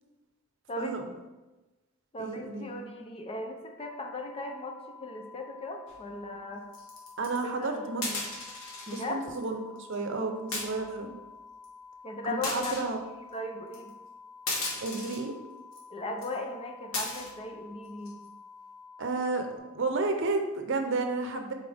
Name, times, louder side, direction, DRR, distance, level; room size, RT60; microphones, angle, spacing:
voice 1, 0.8-1.1 2.2-2.7 7.2-8.4 8.9-11.1 12.3-13.0 14.8-15.3 19.0-21.5, right 3 dB, 65° right, 5 dB, 0.7 m, -32 dB
voice 2, 2.1-6.7 7.4-8.2 8.9-9.2 12.0-12.7 13.3-13.9 15.9-18.2, left 2 dB, 30° left, 3 dB, 0.7 m, -37 dB
sound 1, 3.8-19.6, left 5 dB, 65° left, 0.7 m, -50 dB
sound 2, 5.9-6.1 6.7-7.5 8.0-9.0 9.3-9.5 9.8-9.9 10.5-11.0 11.6-11.7 12.4-12.9 13.7-13.9 14.5-15.2 15.7-15.8 16.2-16.4 16.9-17.3 17.9-18.3, left 2 dB, 85° left, 1.5 m, -36 dB
7.5 x 4.1 x 3.5 m, 1.1 s
head